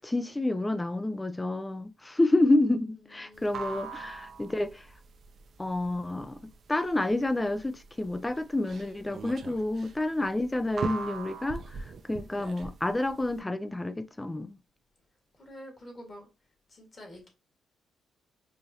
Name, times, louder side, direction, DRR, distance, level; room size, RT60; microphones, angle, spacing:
voice 1, 0.0-4.8 5.6-11.8 12.1-14.6, left 2 dB, 15° left, 0.3 m, -29 dB
voice 2, 3.1-4.1 15.4-16.3 16.7-17.3, equal, 35° left, 1.6 m, -48 dB
sound 1, 3.3-13.4, right 5 dB, 50° right, 0.5 m, -40 dB
4.9 x 2.4 x 2.7 m
cardioid pair, 105°, 0 cm